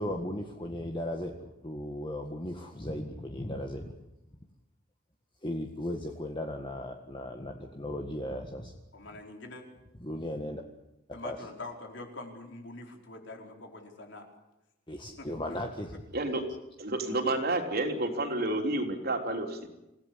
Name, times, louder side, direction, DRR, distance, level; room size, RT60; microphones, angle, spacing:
voice 1, 0.0-3.9 5.4-8.7 10.0-10.6 11.2-11.4 14.9-16.0, left 1 dB, 25° left, 3 dB, 1.8 m, -36 dB
voice 2, 8.9-9.6 11.1-14.3 15.2-15.3, left 2 dB, 65° left, 3 dB, 4.7 m, -44 dB
voice 3, 16.8-19.7, right 2 dB, 50° right, 3 dB, 3.8 m, -30 dB
27.5 x 17.0 x 8.6 m, 0.94 s
head